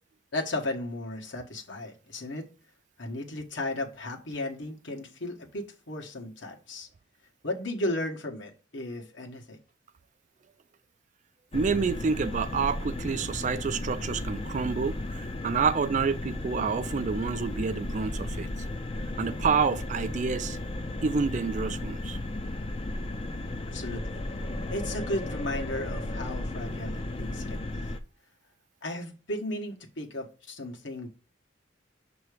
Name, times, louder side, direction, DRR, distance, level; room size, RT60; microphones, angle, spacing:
voice 1, 0.3-2.5 3.0-6.9 7.4-9.6 23.7-24.2 24.7-27.6 28.8-31.1, left 1 dB, 70° left, 1.3 m, -35 dB
sound 1, 11.5-28.0, left 1 dB, 30° left, 0.5 m, -35 dB
voice 2, 11.5-18.5 19.2-20.6 21.0-22.2, right 5 dB, 40° right, 0.3 m, -28 dB
6.7 x 3.0 x 4.8 m
head